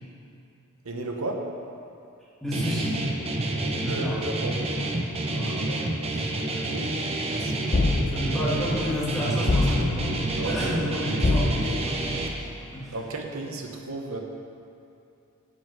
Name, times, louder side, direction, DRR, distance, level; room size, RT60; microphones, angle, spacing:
voice 1, 0.8-1.5 3.8-4.6 7.3-7.6 9.6-9.8 10.4-10.9 12.9-14.2, right 2 dB, 70° right, 2 dB, 0.9 m, -33 dB
voice 2, 2.4-3.0 3.8-4.2 5.3-6.9 8.0-12.2 12.7-13.1, equal, ahead, -8 dB, 1.6 m, -32 dB
Guitar, 2.5-12.3, right 1 dB, 25° right, 0.6 m, -28 dB
sound 1, 7.7-8.5 9.5-10.2 11.2-12.0, left 2 dB, 35° left, 0.5 m, -25 dB
8.4 x 5.4 x 5.4 m, 2.7 s
head